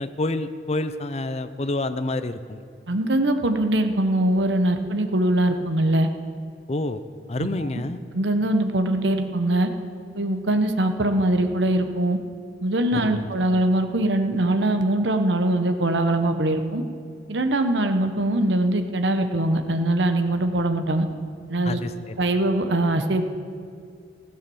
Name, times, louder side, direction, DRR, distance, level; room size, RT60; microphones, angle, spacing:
voice 1, 0.0-2.6 6.7-7.0 7.3-8.0 12.9-13.3 21.6-22.2, left 2 dB, 35° left, 11 dB, 0.6 m, -28 dB
voice 2, 2.9-6.1 8.1-9.7 10.1-12.2 12.6-16.8 17.3-21.1 21.5-21.8 22.2-23.2, right 1 dB, 90° right, 7 dB, 1.0 m, -22 dB
15.5 x 9.0 x 7.1 m, 2.3 s
head